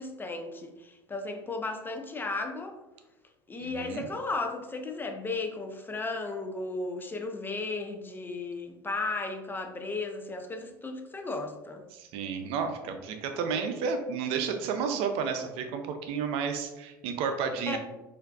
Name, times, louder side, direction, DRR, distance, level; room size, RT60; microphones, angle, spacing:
voice 1, 0.0-2.8 3.5-11.8 17.7-17.8, left 3 dB, 20° left, 5 dB, 0.6 m, -35 dB
voice 2, 3.6-4.1 11.9-17.8, right 6 dB, 60° right, 6 dB, 0.6 m, -31 dB
4.4 x 2.6 x 2.4 m, 1.0 s
hypercardioid pair, 75°, 11 cm